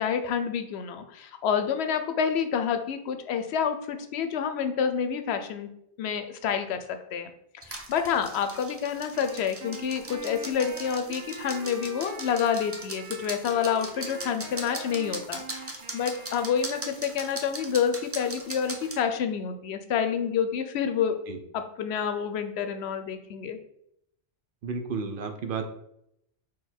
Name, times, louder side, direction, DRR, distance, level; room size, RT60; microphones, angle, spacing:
voice 1, 0.0-5.7 6.0-6.8 7.1-7.3 7.7-15.4 15.9-21.2 21.5-23.6, left 7 dB, 75° left, 8 dB, 0.8 m, -28 dB
sound 1, 7.6-19.0, right 2 dB, 25° right, 0.3 m, -40 dB
Wind instrument woodwind instrument, 9.1-17.3, right 3 dB, 80° right, 1.0 m, -44 dB
voice 2, 24.6-25.6, right 5 dB, 60° right, 6 dB, 0.7 m, -32 dB
3.8 x 3.2 x 4.3 m, 0.76 s
omnidirectional pair, 1.1 m